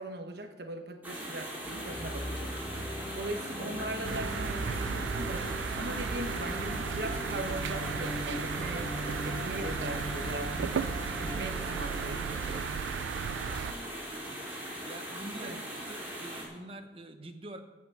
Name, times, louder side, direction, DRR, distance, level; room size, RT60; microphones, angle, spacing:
voice 1, 0.0-2.5 2.9-5.5 5.7-8.9 9.2-10.9 11.2-12.7 15.4-15.6, right 1 dB, 60° right, 6 dB, 1.2 m, -40 dB
sound 1, 1.0-16.4, equal, 10° right, 3.6 m, -40 dB
sound 2, 1.6-12.6, equal, 10° left, 1.5 m, -39 dB
sound 3, 4.0-13.7, right 7 dB, 90° right, 0.3 m, -36 dB
voice 2, 11.2-11.6 13.5-17.6, right 1 dB, 30° right, 7 dB, 1.0 m, -47 dB
14.5 x 6.0 x 7.7 m, 1.1 s
head